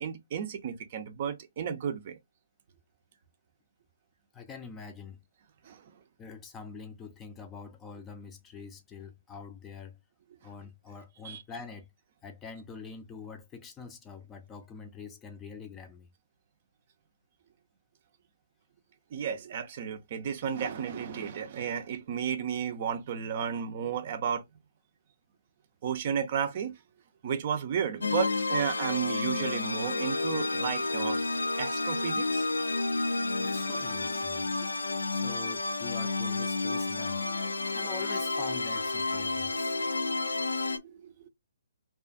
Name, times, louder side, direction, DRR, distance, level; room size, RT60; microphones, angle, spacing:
voice 1, 0.0-2.2 5.7-5.8 11.2-11.4 19.1-24.4 25.8-26.7 27.2-31.2 31.6-32.5 41.0-41.1, right 7 dB, 45° right, 0.5 m, -33 dB
voice 2, 4.3-5.2 6.2-10.0 10.4-11.9 12.2-16.1 33.4-34.5 35.1-37.2 37.7-39.7, left 5 dB, 15° left, 0.4 m, -45 dB
sound 1, 28.0-40.8, left 3 dB, 80° left, 0.3 m, -30 dB
2.4 x 2.4 x 2.4 m
figure-of-eight pair, 135°, 0 cm